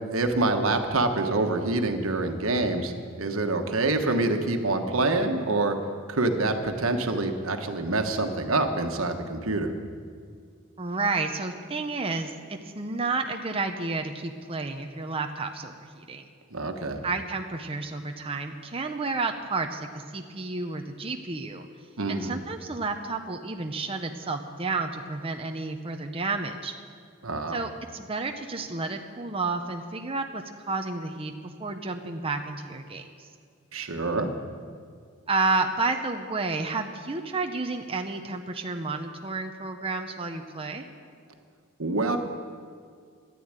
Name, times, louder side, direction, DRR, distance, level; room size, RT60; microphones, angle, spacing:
voice 1, 0.1-2.9 3.2-5.7 6.1-9.8 16.5-17.0 22.0-22.4 27.2-27.6 33.7-34.3 41.8-42.2, right 2 dB, 85° right, 5 dB, 1.4 m, -26 dB
voice 2, 10.8-16.2 17.0-21.7 22.1-26.7 27.5-31.3 31.6-33.0 35.3-40.9, right 3 dB, 25° right, 4 dB, 0.8 m, -31 dB
13.0 x 11.0 x 9.0 m, 2.1 s
head